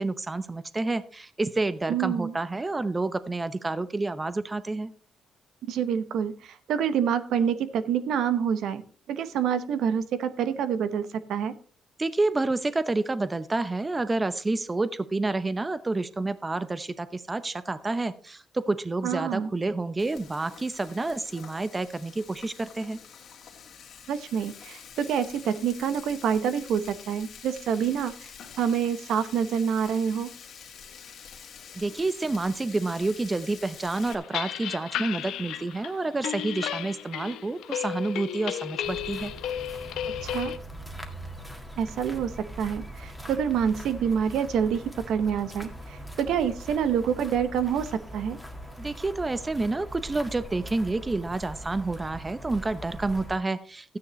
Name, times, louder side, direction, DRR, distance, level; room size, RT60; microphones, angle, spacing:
voice 1, 0.0-4.9 12.0-23.0 31.7-39.3 48.8-54.0, right 2 dB, 20° right, 14 dB, 0.7 m, -29 dB
voice 2, 1.9-2.3 5.7-8.8 9.1-11.5 19.0-19.5 24.1-28.3 28.6-30.3 40.2-40.5 41.8-44.8 45.1-48.4, right 8 dB, 80° right, 12 dB, 0.9 m, -27 dB
Frying (food), 20.0-34.1, left 7 dB, 60° left, 2.2 m, -47 dB
sound 1, 33.9-40.6, left 11 dB, 85° left, 0.7 m, -34 dB
sound 2, 38.8-53.4, right 1 dB, ahead, 1.8 m, -41 dB
13.0 x 9.6 x 3.1 m, 0.42 s
cardioid pair, 90°, 0 cm